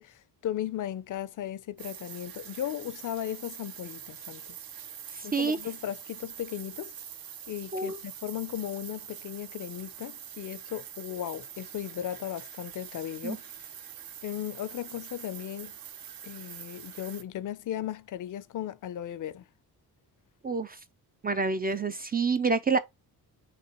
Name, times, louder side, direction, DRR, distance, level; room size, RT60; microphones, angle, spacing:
voice 1, 0.0-4.6 5.2-6.9 7.5-13.4 14.2-15.7 16.2-19.4, left 11 dB, 50° left, 0.5 m, -36 dB
sound 1, 1.8-17.2, right 9 dB, 60° right, 0.7 m, -45 dB
voice 2, 5.1-5.6 7.7-8.0 13.2-13.4 20.4-20.8 21.2-22.8, right 4 dB, 25° right, 0.3 m, -28 dB
5.8 x 2.9 x 2.9 m
cardioid pair, 110°, 40 cm